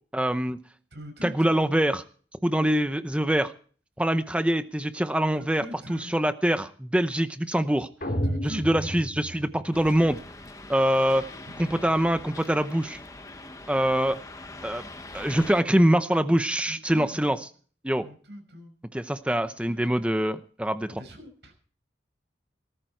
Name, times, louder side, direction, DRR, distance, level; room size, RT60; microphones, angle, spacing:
voice 1, 0.1-0.6 1.2-2.0 2.4-3.5 4.0-5.6 5.9-7.9 8.4-10.2 10.7-11.3 11.6-13.0 13.7-14.2 14.6-14.9 15.1-17.4 17.8-18.0 18.9-20.9, right 1 dB, 5° right, 10 dB, 0.6 m, -24 dB
voice 2, 0.9-1.7 5.4-6.1 8.2-8.9 11.5-11.8 16.6-17.4 18.0-18.7 19.4-20.3 20.9-21.5, equal, 80° right, 5 dB, 5.9 m, -43 dB
sound 1, 8.0-10.1, equal, 50° left, 3.5 m, -31 dB
sound 2, 9.7-15.6, left 2 dB, 20° left, 1.1 m, -43 dB
19.0 x 13.5 x 4.5 m, 0.42 s
head